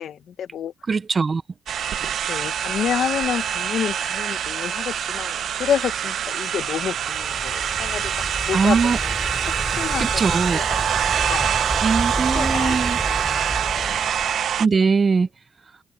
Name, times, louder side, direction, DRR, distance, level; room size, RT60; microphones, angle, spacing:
voice 1, 0.0-0.7 2.3-8.1 8.5-9.2 9.7-11.5 12.1-13.2 13.6-14.0, left 9 dB, 65° left, 1.4 m, -29 dB
voice 2, 0.9-1.4 8.5-9.0 10.0-10.6 11.8-13.0 14.6-15.3, right 5 dB, 35° right, 0.9 m, -20 dB
sound 1, 1.7-14.7, right 9 dB, 65° right, 1.2 m, -25 dB
Waves surf, 6.8-14.4, equal, ahead, 7.1 m, -32 dB
cardioid pair, 90°, 0 cm